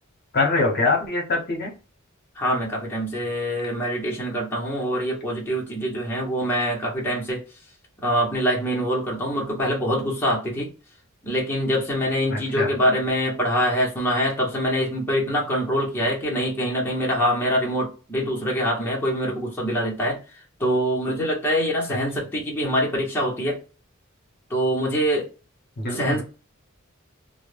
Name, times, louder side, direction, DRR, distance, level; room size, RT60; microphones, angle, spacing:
voice 1, 0.3-1.7 12.3-12.7 21.9-22.0 25.8-26.2, left 3 dB, 50° left, 0.8 m, -24 dB
voice 2, 2.4-7.4 8.0-10.7 11.2-20.2 20.6-23.6 24.5-25.3 26.0-26.2, equal, 10° left, 0.8 m, -24 dB
2.1 x 2.0 x 3.2 m
head